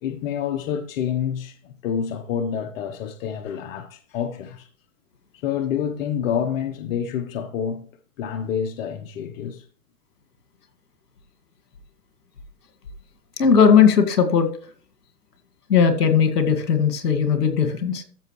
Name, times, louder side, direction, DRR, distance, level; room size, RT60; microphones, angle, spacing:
voice 1, 0.0-4.7 5.3-7.9 8.2-9.6, left 8 dB, 55° left, 1.3 m, -28 dB
voice 2, 13.4-14.5 15.7-18.0, left 7 dB, 90° left, 2.2 m, -17 dB
13.5 x 6.6 x 3.2 m
hypercardioid pair, 135°, 46 cm